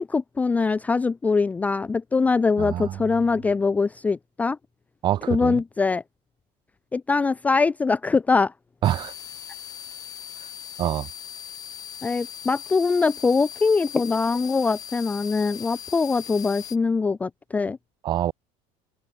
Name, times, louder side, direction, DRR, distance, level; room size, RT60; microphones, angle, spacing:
voice 1, 0.0-4.6 5.3-6.0 6.9-8.5 12.0-17.8, left 4 dB, 10° left, 0.6 m, -23 dB
voice 2, 2.6-3.0 5.0-5.6 8.8-9.1 10.8-11.1 18.0-18.3, right 12 dB, 35° right, 2.3 m, -25 dB
sound 1, 8.8-16.8, left 9 dB, 25° left, 4.0 m, -39 dB
cardioid pair, 175°, 14 cm